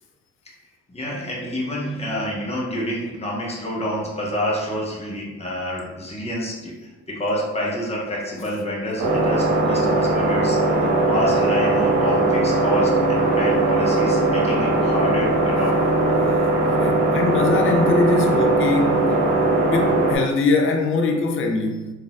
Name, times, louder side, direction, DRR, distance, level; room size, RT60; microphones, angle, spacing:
voice 1, 0.9-10.6 11.0-15.8, equal, 20° left, 1.0 m, -28 dB
sound 1, 9.0-20.2, right 2 dB, 75° right, 1.0 m, -20 dB
sound 2, 12.6-16.7, right 7 dB, 25° right, 0.7 m, -31 dB
voice 2, 16.7-19.2 19.6-21.9, left 3 dB, 45° left, 0.5 m, -22 dB
3.8 x 2.7 x 2.3 m
cardioid pair, 90°, 30 cm